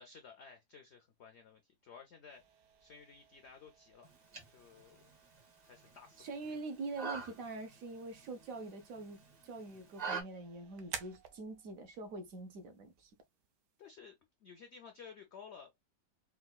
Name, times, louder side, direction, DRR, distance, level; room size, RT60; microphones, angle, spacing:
voice 1, 0.0-2.4 2.8-4.1 4.5-5.1 5.6-6.6 13.8-15.7, left 6 dB, 80° left, 0.6 m, -55 dB
sound 1, 2.3-13.9, right 8 dB, 80° right, 1.3 m, -55 dB
sound 2, 4.0-10.2, right 5 dB, 40° right, 0.6 m, -46 dB
voice 2, 6.2-13.1, right 3 dB, 65° right, 0.9 m, -44 dB
4.6 x 2.2 x 2.2 m
omnidirectional pair, 1.8 m